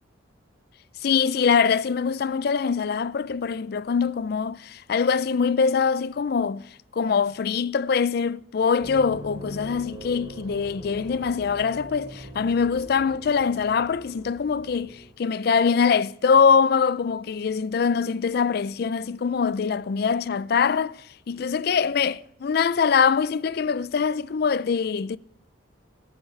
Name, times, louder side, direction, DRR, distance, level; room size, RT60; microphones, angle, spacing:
voice 1, 1.0-6.6 6.9-21.0 21.3-25.2, left 6 dB, 50° left, 0.3 m, -23 dB
sound 1, 8.8-15.1, equal, 20° right, 3.6 m, -42 dB
17.0 x 9.4 x 3.2 m
head